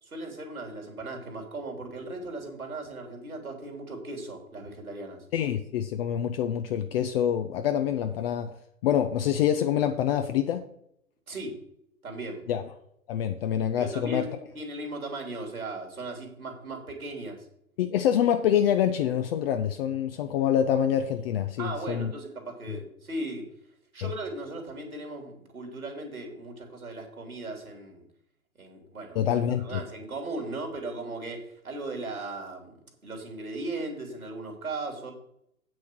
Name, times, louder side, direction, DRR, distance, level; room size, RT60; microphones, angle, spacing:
voice 1, 0.0-5.3 11.3-11.6 12.0-12.4 13.8-17.5 21.6-23.5 23.9-28.0 28.6-29.3 29.6-32.7 33.0-35.1, right 2 dB, 85° right, 2 dB, 3.2 m, -37 dB
voice 2, 5.3-8.5 8.8-10.6 12.5-12.6 13.1-14.3 17.8-22.1 29.1-29.8, left 9 dB, 45° left, 7 dB, 0.7 m, -26 dB
8.6 x 6.3 x 6.1 m, 0.74 s
figure-of-eight pair, 110°, 42 cm